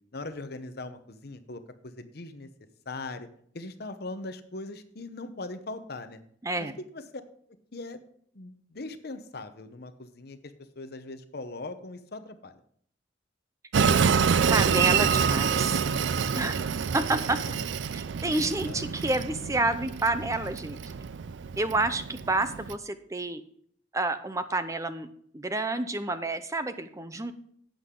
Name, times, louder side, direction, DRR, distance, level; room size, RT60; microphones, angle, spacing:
voice 1, 0.1-2.5 2.9-3.3 3.5-6.2 6.6-7.0 7.7-8.0 8.3-10.4 10.8-12.6 17.5-17.7 18.7-19.0, left 2 dB, 55° left, 10 dB, 0.9 m, -40 dB
voice 2, 6.4-6.7 14.5-15.7 16.3-16.6 16.9-17.4 17.9-20.8 21.4-23.4 23.9-25.1 25.3-27.3, right 2 dB, 15° right, 10 dB, 0.6 m, -29 dB
Train, 13.7-22.8, right 6 dB, 75° right, 0.4 m, -27 dB
11.5 x 8.2 x 3.8 m, 0.62 s
head